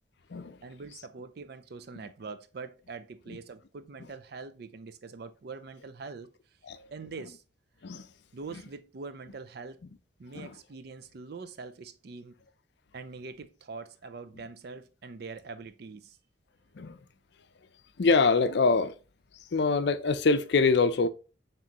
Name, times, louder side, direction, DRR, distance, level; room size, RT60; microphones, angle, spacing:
voice 1, 0.6-6.6 6.9-7.4 8.3-9.8 10.2-12.4 12.9-16.2, right 4 dB, 55° right, 0.4 m, -43 dB
voice 2, 18.0-19.0 19.5-21.1, left 4 dB, 60° left, 0.5 m, -24 dB
5.9 x 3.1 x 2.9 m
head